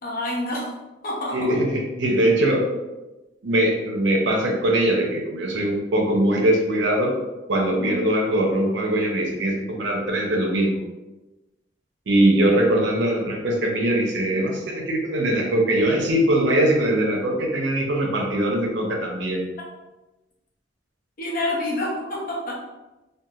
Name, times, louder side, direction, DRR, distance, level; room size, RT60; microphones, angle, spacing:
voice 1, 0.0-0.8 1.0-1.5 7.7-8.0 21.2-22.6, left 1 dB, 50° left, -4 dB, 0.7 m, -28 dB
voice 2, 1.3-2.6 3.4-7.1 7.5-10.8 12.1-19.4, right 1 dB, 75° right, 0 dB, 0.6 m, -21 dB
2.9 x 2.3 x 2.3 m, 1.1 s
head